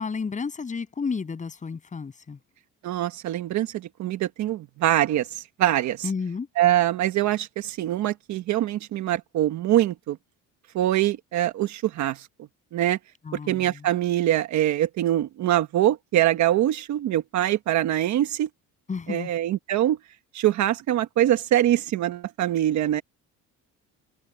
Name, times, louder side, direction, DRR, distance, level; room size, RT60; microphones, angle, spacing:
voice 1, 0.0-2.4 6.0-6.5 13.2-13.9 18.9-19.3, left 5 dB, 20° left, 7.1 m, -31 dB
voice 2, 2.8-6.1 6.6-10.2 10.7-12.3 12.7-13.0 13.5-18.5 19.1-20.0 20.3-23.0, right 13 dB, 55° right, 1.3 m, -24 dB
cardioid pair, 160°, 33 cm